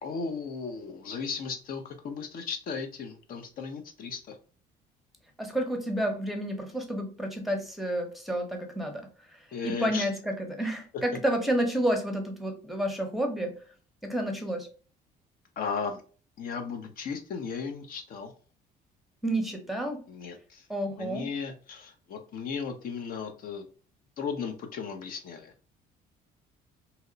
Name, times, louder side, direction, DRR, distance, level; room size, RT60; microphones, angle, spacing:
voice 1, 0.0-4.4 9.5-10.1 15.6-16.0 16.4-18.3 20.1-20.7 21.0-23.7 24.2-25.5, left 5 dB, 60° left, 5 dB, 0.6 m, -36 dB
voice 2, 5.4-9.1 9.6-13.6 14.0-14.7 19.2-20.1 20.7-21.3, right 1 dB, ahead, 3 dB, 0.8 m, -30 dB
2.8 x 2.0 x 3.8 m, 0.39 s
cardioid pair, 110°, 17 cm